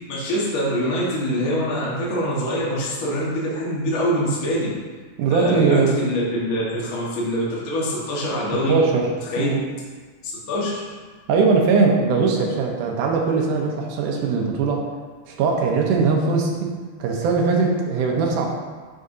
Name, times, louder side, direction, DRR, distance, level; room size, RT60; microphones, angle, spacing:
voice 1, 0.1-4.7 5.3-8.8 9.3-9.5 10.5-10.9, equal, 40° left, -6 dB, 1.4 m, -24 dB
voice 2, 5.2-6.0 8.7-9.1 9.4-9.6 11.3-14.8 15.3-16.7 17.0-18.5, right 4 dB, 80° right, 0 dB, 2.4 m, -20 dB
10.0 x 4.8 x 2.7 m, 1.5 s
omnidirectional pair, 3.6 m